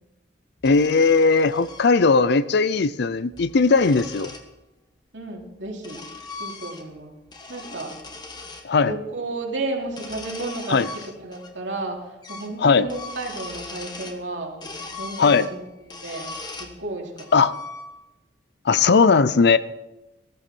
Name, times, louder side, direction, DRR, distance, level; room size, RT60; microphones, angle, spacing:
voice 1, 0.6-4.3 8.6-8.9 10.7-10.9 12.6-12.9 15.2-15.5 17.3-17.5 18.7-19.6, left 4 dB, 60° left, 15 dB, 0.5 m, -18 dB
threading a rod, 0.6-1.9 3.1-4.5 5.4-7.0 7.3-8.7 9.8-11.5 11.8-11.9 12.2-12.6 12.8-14.2 14.6-16.8 17.2-18.1, left 3 dB, 25° left, 1.3 m, -39 dB
voice 2, 5.1-6.0 6.4-7.2 7.5-7.9 8.8-17.3, right 2 dB, 70° right, 0 dB, 3.0 m, -33 dB
15.5 x 14.0 x 4.4 m, 0.99 s
head